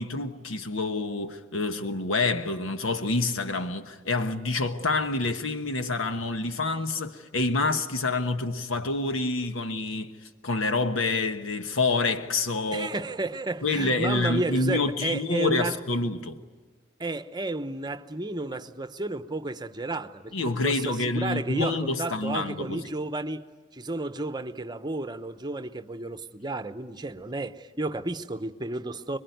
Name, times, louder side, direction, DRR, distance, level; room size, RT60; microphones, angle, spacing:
voice 1, 0.0-10.2 10.4-12.9 13.6-16.4 20.3-22.8, left 3 dB, 85° left, 1.2 m, -27 dB
voice 2, 12.7-15.8 17.0-23.4 23.7-29.2, right 2 dB, 20° right, 0.8 m, -32 dB
26.0 x 22.5 x 9.3 m
head